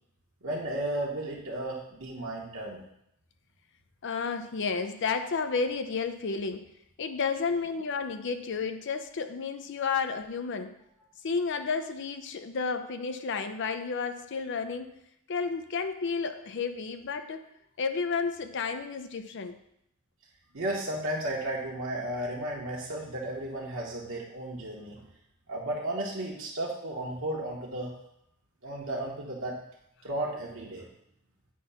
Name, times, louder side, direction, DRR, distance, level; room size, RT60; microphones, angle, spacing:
voice 1, 0.4-2.8 20.5-25.1 25.5-27.9 28.6-29.6 30.0-30.8, right 1 dB, 65° right, -3 dB, 1.2 m, -34 dB
voice 2, 4.0-6.6 7.0-10.7 11.2-14.9 15.3-17.4 17.8-19.5, left 5 dB, 60° left, 8 dB, 0.5 m, -31 dB
8.4 x 2.9 x 5.6 m, 0.77 s
head